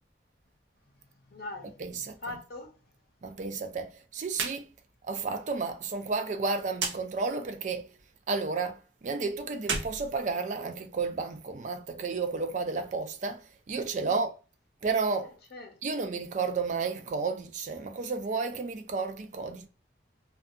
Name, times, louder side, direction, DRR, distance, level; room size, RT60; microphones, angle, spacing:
voice 1, 1.3-2.7 14.0-14.2 15.2-16.0, left 2 dB, 55° left, 0.7 m, -43 dB
voice 2, 1.8-2.4 3.2-4.7 5.1-7.9 8.3-14.3 14.8-15.3 15.8-19.7, right 4 dB, 40° right, 0.3 m, -32 dB
sound 1, 4.3-4.6 4.9-5.0 6.7-7.0 9.5-10.9, right 4 dB, 85° right, 0.6 m, -33 dB
2.6 x 2.3 x 2.5 m
head